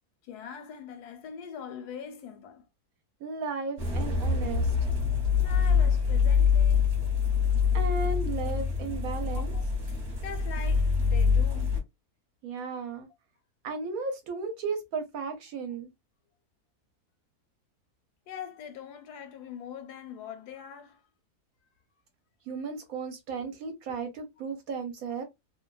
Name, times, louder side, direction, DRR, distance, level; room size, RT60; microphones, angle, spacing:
voice 1, 0.2-2.7 5.4-7.0 9.3-11.8 18.3-21.0 22.5-22.6, left 7 dB, 80° left, 1.2 m, -43 dB
voice 2, 3.2-4.7 7.7-9.5 12.4-13.1 13.6-15.9 22.5-25.2, right 4 dB, 70° right, 1.0 m, -35 dB
sound 1, 3.8-11.8, left 6 dB, 45° right, 1.0 m, -25 dB
2.7 x 2.2 x 2.2 m
omnidirectional pair, 1.7 m